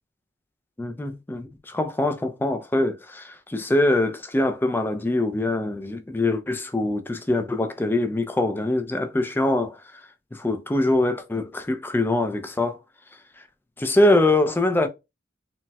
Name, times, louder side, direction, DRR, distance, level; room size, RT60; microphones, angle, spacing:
voice 1, 0.8-12.8 13.8-14.9, left 2 dB, 10° left, 0.3 m, -23 dB
4.0 x 2.0 x 2.2 m
head